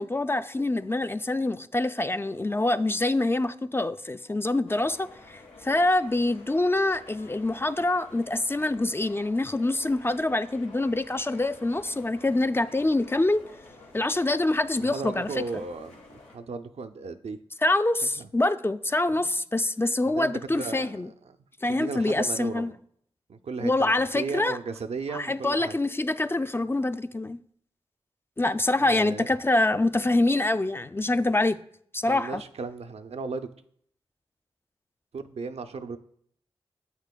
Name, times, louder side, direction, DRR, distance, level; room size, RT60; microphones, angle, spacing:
voice 1, 0.0-13.4 13.9-15.3 17.6-21.1 21.6-22.7 23.6-24.6 25.1-27.4 28.4-31.6 31.9-32.4, left 2 dB, 20° left, 0.3 m, -25 dB
sound 1, 4.7-16.4, left 2 dB, 90° left, 1.3 m, -50 dB
voice 2, 14.8-17.4 18.0-18.3 19.1-19.3 20.1-21.0 21.7-22.7 23.3-25.8 28.8-29.3 32.0-33.5 35.1-36.0, right 4 dB, 70° right, 0.5 m, -36 dB
8.2 x 8.1 x 2.3 m
cardioid pair, 45°, 11 cm